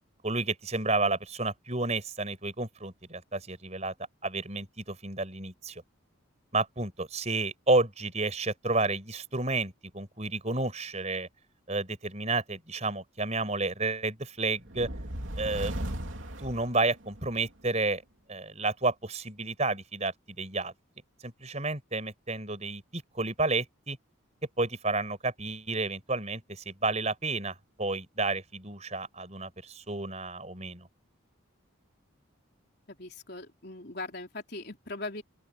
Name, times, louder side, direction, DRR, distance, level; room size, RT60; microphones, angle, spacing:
voice 1, 0.2-3.9 4.2-5.8 6.5-11.3 11.7-14.9 15.4-15.8 16.4-18.0 18.3-20.7 21.2-24.0 24.6-30.9, right 2 dB, 35° right, 5.1 m, -31 dB
sound 1, 14.6-17.4, right 1 dB, 70° right, 3.1 m, -36 dB
voice 2, 32.9-35.2, left 2 dB, 50° left, 4.1 m, -40 dB
open air
head